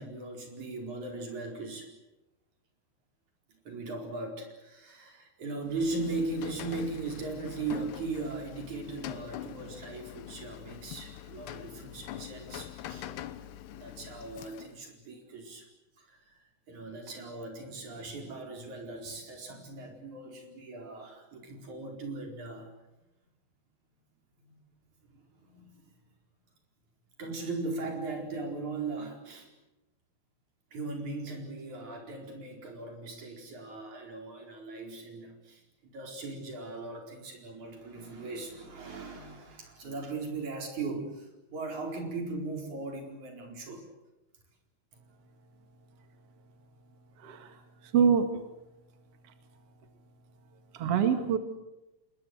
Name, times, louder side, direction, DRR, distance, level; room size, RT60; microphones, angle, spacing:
voice 1, 0.0-1.9 3.7-13.1 13.7-15.7 16.0-16.4 16.7-22.7 24.4-24.6 25.1-25.9 27.2-29.5 30.7-43.9, right 3 dB, 40° right, 3 dB, 5.4 m, -38 dB
Rain, 5.6-14.9, left 12 dB, 70° left, 2.9 m, -44 dB
voice 2, 47.2-47.6 47.8-48.3 50.7-51.4, right 7 dB, 60° right, 7 dB, 1.6 m, -25 dB
28.0 x 21.0 x 7.9 m, 0.98 s
omnidirectional pair, 5.6 m